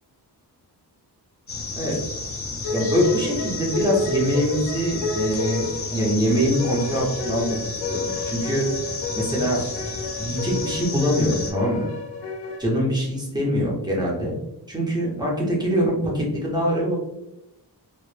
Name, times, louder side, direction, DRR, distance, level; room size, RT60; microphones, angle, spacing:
sound 1, 1.5-11.5, left 3 dB, 35° left, 0.5 m, -32 dB
sound 2, 2.6-12.6, left 4 dB, 85° left, 0.6 m, -31 dB
voice 1, 2.7-5.6 5.9-7.6 7.9-8.7 9.1-9.6 10.2-11.9 12.6-14.4 14.7-17.0, equal, 10° right, -4 dB, 0.6 m, -23 dB
2.0 x 2.0 x 3.1 m, 0.88 s
wide cardioid pair, 155°, 41 cm